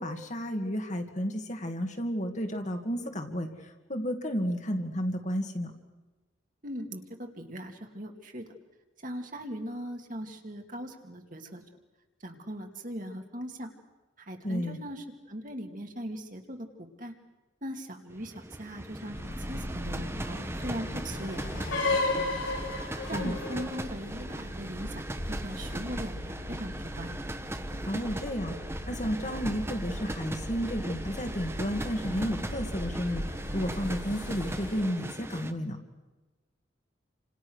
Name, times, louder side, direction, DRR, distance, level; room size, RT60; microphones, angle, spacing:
voice 1, 0.0-3.5 3.9-5.7 14.4-14.8 23.1-23.3 27.9-28.5 28.9-35.8, equal, 40° left, 4 dB, 2.4 m, -32 dB
voice 2, 6.6-8.5 9.0-11.6 12.2-13.7 14.2-17.1 17.6-19.2 19.5-22.4 23.1-27.1, equal, 45° right, 4 dB, 2.6 m, -40 dB
sound 1, 18.1-35.5, right 1 dB, 15° right, 1.1 m, -39 dB
sound 2, 19.1-34.8, left 1 dB, 80° left, 4.4 m, -36 dB
29.0 x 26.5 x 6.5 m, 1.2 s
head